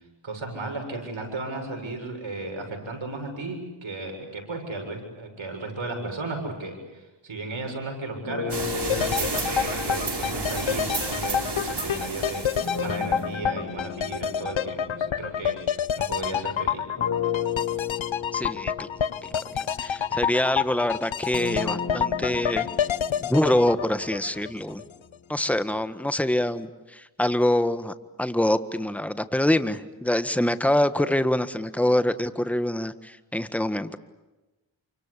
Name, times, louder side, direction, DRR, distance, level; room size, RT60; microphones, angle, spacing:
voice 1, 0.2-12.5 12.8-15.6 16.0-16.8, right 2 dB, 80° right, 4 dB, 7.4 m, -35 dB
sound 1, 8.2-11.8 12.6-16.4 17.0-24.9, left 7 dB, 35° left, 6.3 m, -35 dB
sound 2, 8.5-13.2, right 3 dB, 55° right, 5.4 m, -31 dB
sound 3, 8.9-24.8 25.1-25.2, left 8 dB, 80° left, 0.9 m, -28 dB
voice 2, 18.3-18.9 19.8-22.7 23.3-24.8 25.3-34.0, left 1 dB, 5° left, 11 dB, 1.6 m, -25 dB
28.0 x 25.0 x 8.5 m, 1.1 s
cardioid pair, 40°, 46 cm